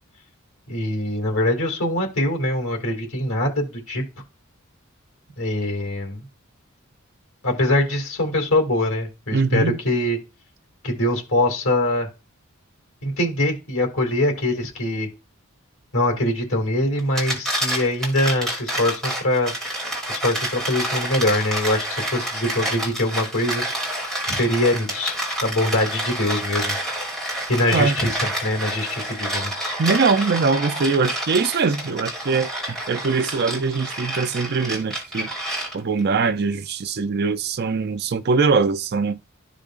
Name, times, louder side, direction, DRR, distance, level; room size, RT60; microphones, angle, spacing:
voice 1, 0.7-4.0 5.4-6.2 7.4-10.2 10.8-12.1 13.0-15.1 15.9-19.5 20.1-23.6 24.3-25.2 25.4-26.8 27.5-29.5, left 1 dB, 85° left, 2.4 m, -23 dB
voice 2, 9.3-9.8 27.7-28.0 29.8-35.3 35.7-39.2, right 4 dB, 50° right, 0.5 m, -22 dB
sound 1, 17.0-36.0, right 1 dB, ahead, 2.3 m, -28 dB
12.5 x 5.0 x 2.5 m
head